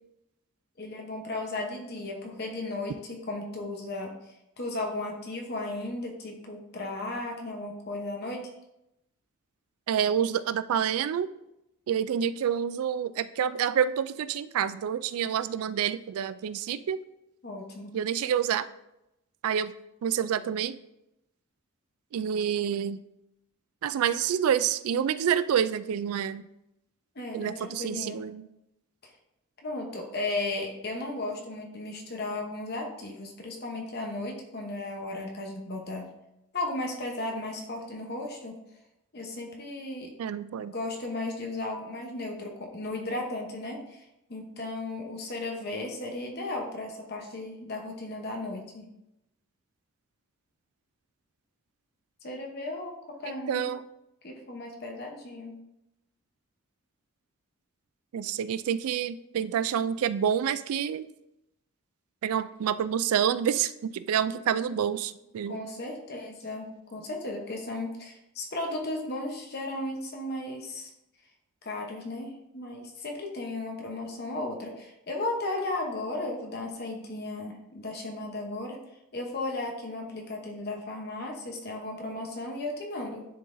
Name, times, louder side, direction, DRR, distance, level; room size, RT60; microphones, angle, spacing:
voice 1, 0.8-8.5 17.4-18.0 27.1-28.2 29.0-29.1 29.6-36.1 36.5-38.6 39.1-40.1 40.7-44.0 44.3-48.9 52.2-53.7 54.2-55.6 65.4-70.9 71.6-78.8 79.1-83.3, left 2 dB, 45° left, 1 dB, 0.8 m, -35 dB
voice 2, 9.9-11.3 11.9-17.0 17.9-18.7 19.4-19.7 20.0-20.8 22.1-23.0 23.8-26.4 27.3-28.4 40.2-40.7 53.5-53.8 58.1-61.1 62.2-65.6, right 8 dB, 85° right, 15 dB, 0.3 m, -28 dB
10.5 x 3.9 x 2.6 m, 0.87 s
head